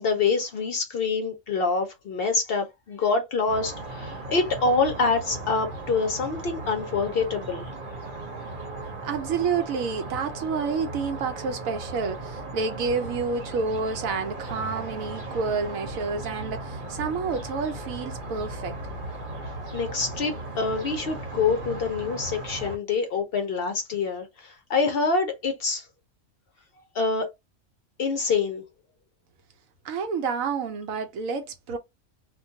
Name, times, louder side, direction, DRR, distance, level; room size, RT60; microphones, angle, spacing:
voice 1, 0.0-7.7 19.4-25.9 26.9-27.3 28.0-28.6, left 4 dB, 60° left, 0.7 m, -26 dB
sound 1, 3.5-22.8, right 2 dB, 45° right, 0.9 m, -37 dB
voice 2, 9.0-18.8 29.8-31.8, right 5 dB, 85° right, 1.1 m, -29 dB
2.4 x 2.2 x 2.7 m
omnidirectional pair, 1.4 m